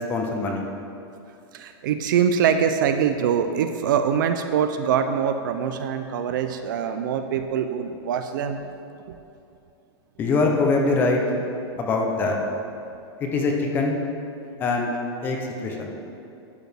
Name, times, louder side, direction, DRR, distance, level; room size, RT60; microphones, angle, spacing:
voice 1, 0.1-0.6 10.2-11.2 11.8-12.4 13.2-14.0 14.6-14.9 15.2-15.9, left 3 dB, 15° left, 1 dB, 0.5 m, -23 dB
voice 2, 1.5-8.7, right 7 dB, 45° right, 8 dB, 0.4 m, -23 dB
12.0 x 4.5 x 3.4 m, 2.7 s
supercardioid pair, 175°, 14 cm